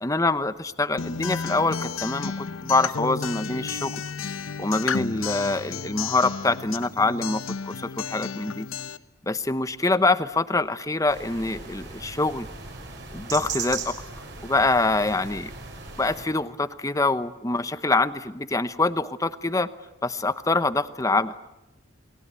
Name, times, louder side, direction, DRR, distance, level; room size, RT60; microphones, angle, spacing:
voice 1, 0.0-4.0 4.6-8.7 9.3-12.5 13.1-14.0 14.4-15.5 16.0-19.7 20.0-21.3, left 2 dB, 15° left, 13 dB, 0.9 m, -25 dB
Acoustic guitar, 1.0-9.0, left 5 dB, 85° left, 0.9 m, -32 dB
sound 1, 11.1-16.3, right 5 dB, 55° right, 6.4 m, -37 dB
28.5 x 21.5 x 8.3 m, 1.0 s
head